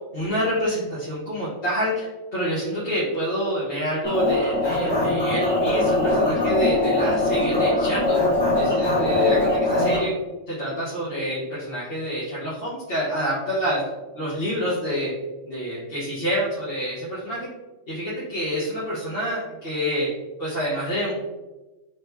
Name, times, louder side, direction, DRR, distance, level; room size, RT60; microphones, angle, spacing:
voice 1, 0.0-8.2 8.5-10.1 10.5-13.8 14.1-15.1 15.4-17.5 17.9-20.1 20.4-21.1, equal, 45° left, -10 dB, 1.4 m, -27 dB
sound 1, 4.0-10.0, left 2 dB, 20° left, 1.4 m, -21 dB
4.1 x 3.4 x 2.8 m, 1.1 s
omnidirectional pair, 1.4 m